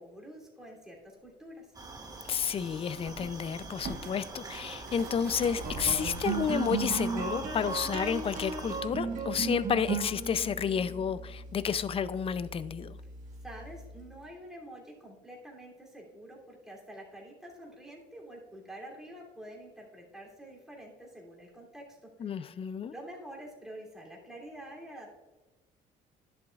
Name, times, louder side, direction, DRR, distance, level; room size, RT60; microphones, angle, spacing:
voice 1, 0.0-1.8 13.4-22.5 22.9-25.2, right 1 dB, 5° right, -3 dB, 2.9 m, -47 dB
sound 1, 1.1-1.2 2.9-6.9 7.5-7.6, right 4 dB, 65° right, 1.4 m, -45 dB
sound 2, 1.7-8.8, right 3 dB, 20° right, 1.2 m, -44 dB
voice 2, 2.3-13.0 22.2-22.9, left 7 dB, 35° left, 16 dB, 0.4 m, -31 dB
sound 3, 4.7-14.3, right 4 dB, 50° right, 1.8 m, -37 dB
11.0 x 7.8 x 2.4 m, 1.2 s
cardioid pair, 110°, 17 cm